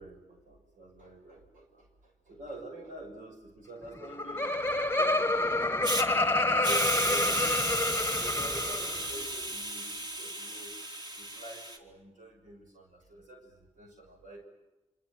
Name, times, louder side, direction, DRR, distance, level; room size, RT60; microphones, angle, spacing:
voice 1, 0.0-4.5 4.9-10.7 11.1-14.5, right 1 dB, 90° right, 1 dB, 6.0 m, -47 dB
sound 1, 3.8-9.7, equal, 5° right, 2.5 m, -46 dB
Laughter, 3.9-9.1, left 2 dB, 20° left, 1.1 m, -28 dB
Hiss, 5.8-6.0 6.6-11.8, right 1 dB, 35° right, 3.5 m, -33 dB
27.5 x 25.5 x 7.9 m, 1.1 s
cardioid pair, 60°, 13 cm